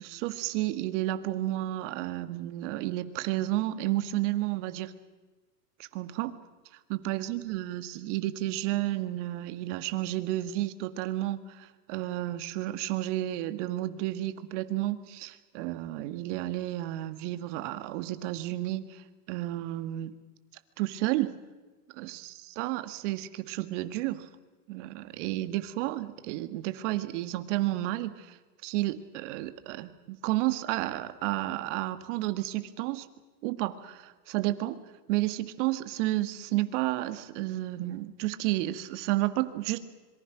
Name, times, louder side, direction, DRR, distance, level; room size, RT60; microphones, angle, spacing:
voice 1, 0.0-4.9 5.8-6.3 6.9-20.1 20.8-21.4 22.0-24.3 24.7-28.4 28.6-33.1 33.4-34.8 35.1-39.8, right 16 dB, 45° right, 11 dB, 1.8 m, -31 dB
26.0 x 23.0 x 6.2 m, 1.3 s
hypercardioid pair, 135°, 48 cm